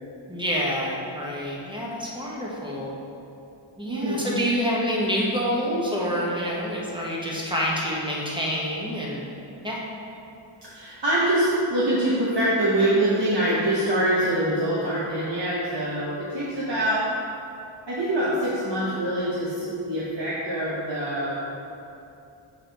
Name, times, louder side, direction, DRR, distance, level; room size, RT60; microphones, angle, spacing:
voice 1, 0.3-2.9 3.8-9.2 9.6-9.8, equal, 10° right, -5 dB, 1.3 m, -27 dB
voice 2, 3.8-4.3 10.6-17.1 17.9-21.5, right 1 dB, 55° right, -9 dB, 1.1 m, -24 dB
6.4 x 4.2 x 4.0 m, 2.7 s
wide cardioid pair, 40°, 50 cm